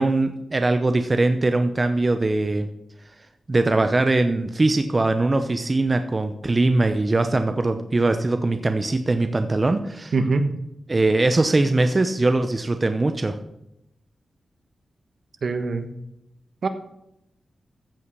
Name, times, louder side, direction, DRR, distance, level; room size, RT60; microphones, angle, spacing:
voice 1, 0.0-2.7 3.5-10.1 10.9-13.4, right 2 dB, 30° right, 8 dB, 0.7 m, -21 dB
voice 2, 10.1-10.5 15.4-15.9 16.6-16.7, right 3 dB, 65° right, 8 dB, 1.3 m, -22 dB
14.5 x 5.6 x 5.4 m, 0.84 s
wide cardioid pair, 95°, 0 cm